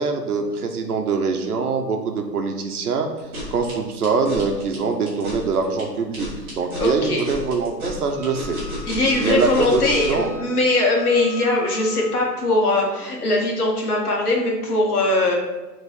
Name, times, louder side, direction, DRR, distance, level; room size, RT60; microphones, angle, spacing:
voice 1, 0.0-3.1 3.5-8.6 9.2-10.3, right 4 dB, 65° right, 4 dB, 1.1 m, -23 dB
sound 1, 3.2-10.3, equal, 10° right, 1.5 m, -32 dB
voice 2, 6.8-7.2 8.8-15.4, left 2 dB, 60° left, -1 dB, 2.1 m, -21 dB
Wind instrument woodwind instrument, 8.2-12.4, left 7 dB, 45° right, 1.1 m, -41 dB
6.7 x 4.0 x 5.3 m, 1.1 s
hypercardioid pair, 180°, 49 cm